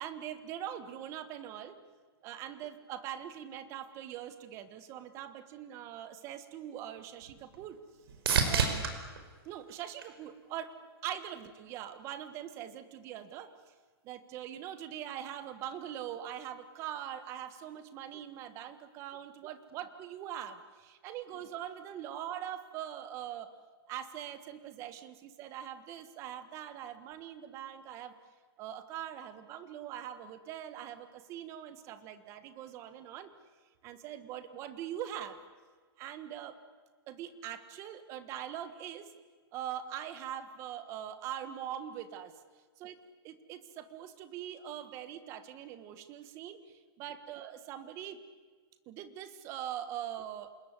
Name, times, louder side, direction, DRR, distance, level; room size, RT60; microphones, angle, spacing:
voice 1, 0.0-1.8 2.2-7.8 8.5-8.9 9.4-10.8 11.0-13.5 14.0-23.5 23.9-28.1 28.6-33.3 33.8-35.4 36.0-36.6 37.1-39.1 39.5-42.3 42.8-42.9 43.2-48.2 48.9-50.5, right 10 dB, 20° right, 11 dB, 1.5 m, -42 dB
sound 1, 6.5-10.7 11.2-11.9 19.7-19.8, right 6 dB, 65° right, 5.0 m, -34 dB
27.5 x 20.5 x 9.8 m, 1.5 s
hypercardioid pair, 175°, 13 cm